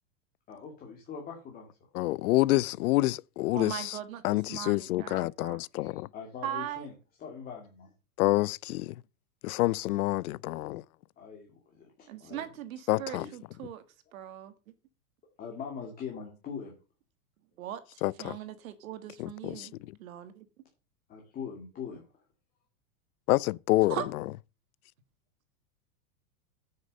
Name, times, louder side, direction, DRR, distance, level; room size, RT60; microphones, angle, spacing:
voice 1, 0.5-1.7 5.7-6.9 7.2-7.9 11.2-12.4 13.1-13.3 15.4-16.7 21.1-22.0, left 6 dB, 20° left, 2.3 m, -42 dB
voice 2, 1.9-4.0 4.2-6.1 8.2-9.0 9.4-10.8 12.9-13.3 18.0-18.4 19.2-20.0 23.3-24.2, left 18 dB, 70° left, 0.5 m, -28 dB
voice 3, 3.6-5.6 6.4-6.9 12.1-13.8 14.1-14.5 17.6-19.7 20.0-20.5 23.9-24.1, right 11 dB, 60° right, 1.8 m, -39 dB
9.3 x 6.7 x 6.6 m
supercardioid pair, 170°, 45 cm